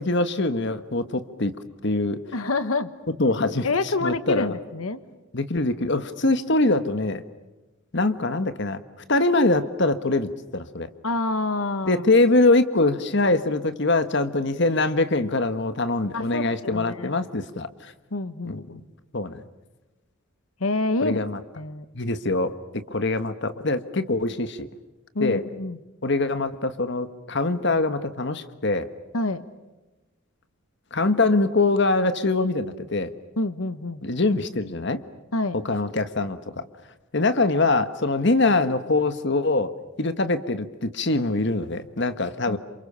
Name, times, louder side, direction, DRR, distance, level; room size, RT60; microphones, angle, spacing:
voice 1, 0.0-1.5 1.8-2.2 3.2-3.7 4.0-4.5 5.3-7.2 7.9-8.8 9.1-10.9 11.8-17.9 18.4-18.6 19.1-19.3 21.0-21.4 21.9-22.5 22.9-24.7 25.2-25.4 26.0-28.9 30.9-33.1 34.0-35.0 35.5-36.6 37.1-39.7 40.0-42.6, left 2 dB, 55° left, 11 dB, 1.4 m, -23 dB
voice 2, 2.3-2.9 3.6-5.0 11.0-12.0 16.1-17.1 18.1-18.8 20.6-21.2 21.6-21.8 25.1-25.8 29.1-29.5 33.4-34.0 35.3-35.6 42.5-42.6, left 2 dB, 85° left, 13 dB, 1.3 m, -27 dB
29.0 x 27.0 x 6.9 m, 1.1 s
head